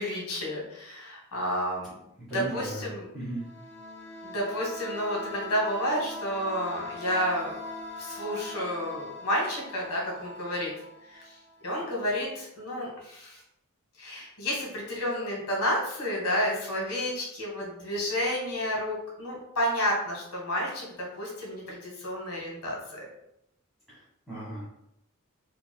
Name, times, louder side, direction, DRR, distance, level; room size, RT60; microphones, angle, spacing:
voice 1, 0.0-2.0 2.3-3.1 4.2-7.6 8.0-10.7 11.1-11.2 11.6-13.4 14.0-23.0, equal, 90° left, -2 dB, 1.4 m, -31 dB
voice 2, 2.3-2.9 3.1-3.5 23.9-24.6, right 1 dB, ahead, -12 dB, 1.3 m, -36 dB
sound 1, 3.3-11.9, left 2 dB, 65° left, 1.3 m, -42 dB
5.1 x 2.8 x 2.2 m, 0.82 s
head